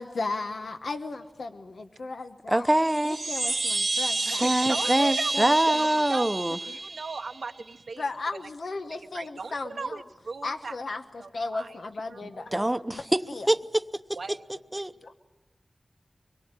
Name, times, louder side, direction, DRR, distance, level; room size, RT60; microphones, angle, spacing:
voice 1, 0.0-2.7 3.0-4.9 5.3-6.0 8.0-10.0 10.4-12.5 12.9-13.0 13.3-13.5 15.0-15.1, left 3 dB, 85° left, 1.1 m, -35 dB
voice 2, 2.5-3.2 4.2-6.6 12.2-13.2 13.5-14.0 14.3-14.9, right 1 dB, 20° right, 0.8 m, -25 dB
Chime, 2.8-7.5, right 3 dB, 60° right, 1.3 m, -30 dB
voice 3, 4.4-5.3 5.6-6.3 6.7-8.0 8.9-10.7 11.2-11.7 12.1-12.8 14.2-14.4, right 4 dB, 90° right, 1.1 m, -37 dB
24.0 x 21.5 x 8.9 m
cardioid pair, 45°, 0 cm